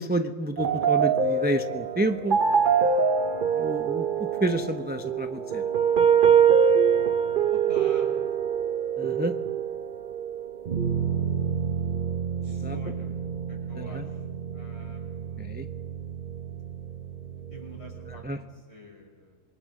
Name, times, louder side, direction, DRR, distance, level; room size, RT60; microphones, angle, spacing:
voice 1, 0.0-2.4 3.5-5.6 9.0-9.3 12.6-12.8 13.8-14.0 15.4-15.7 18.2-18.4, right 1 dB, 10° right, 7 dB, 0.8 m, -29 dB
sound 1, 0.6-18.2, right 7 dB, 45° right, 0.9 m, -25 dB
voice 2, 7.5-8.1 12.4-13.1 13.5-14.2 14.5-15.4 17.5-19.4, equal, 55° left, -1 dB, 6.7 m, -46 dB
27.5 x 23.0 x 6.6 m, 1.3 s
omnidirectional pair, 1.3 m